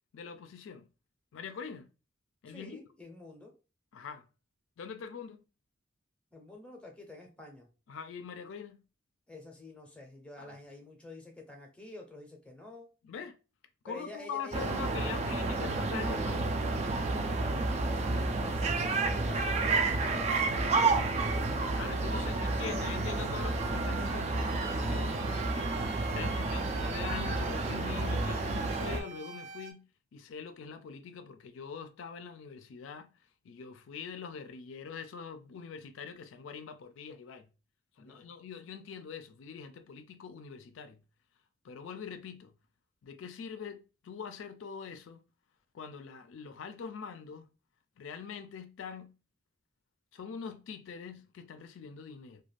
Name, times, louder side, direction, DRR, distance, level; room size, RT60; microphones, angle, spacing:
voice 1, 0.1-0.9 1.3-1.9 2.4-2.8 3.9-4.2 4.8-5.4 7.9-8.8 10.4-10.5 13.0-13.4 13.8-16.6 21.7-25.1 26.1-29.9 30.1-33.1 33.5-37.5 38.0-41.0 41.6-42.5 43.0-45.2 45.7-47.4 48.0-49.1 50.1-52.4, left 6 dB, 80° left, 0.4 m, -43 dB
voice 2, 2.5-3.5 6.3-7.7 9.3-12.9 13.8-15.2 17.0-22.9 38.0-38.3, left 2 dB, 5° left, 0.6 m, -49 dB
sound 1, 14.5-29.0, right 3 dB, 35° right, 0.3 m, -30 dB
sound 2, 23.4-29.7, right 5 dB, 85° right, 0.5 m, -46 dB
2.4 x 2.3 x 3.2 m
head